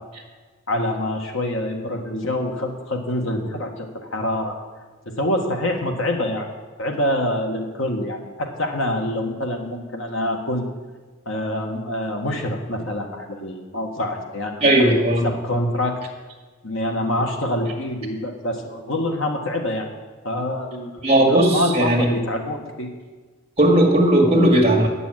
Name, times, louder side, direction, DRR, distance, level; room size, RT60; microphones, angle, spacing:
voice 1, 0.7-4.5 5.0-6.5 6.8-10.7 11.2-15.0 15.2-16.0 16.6-19.9 20.2-22.9, left 1 dB, 65° left, 2 dB, 1.6 m, -26 dB
voice 2, 14.6-15.3 21.0-22.1 23.6-24.9, right 1 dB, 30° right, 0 dB, 1.9 m, -16 dB
9.2 x 7.0 x 9.0 m, 1.4 s
head